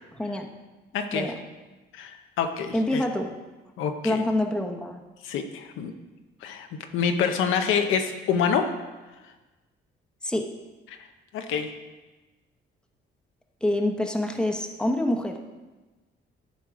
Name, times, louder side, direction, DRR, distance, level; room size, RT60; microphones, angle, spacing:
voice 1, 0.1-0.5 1.1-1.4 2.7-3.3 4.0-5.0 10.2-10.5 13.6-15.4, left 1 dB, 5° left, 3 dB, 1.0 m, -26 dB
voice 2, 0.9-1.3 1.9-3.0 3.8-4.2 5.2-5.9 6.4-6.7 6.9-8.7 10.9-11.0 11.3-11.7, left 6 dB, 90° left, 5 dB, 0.8 m, -26 dB
11.5 x 4.8 x 4.7 m, 1.2 s
cardioid pair, 90°, 20 cm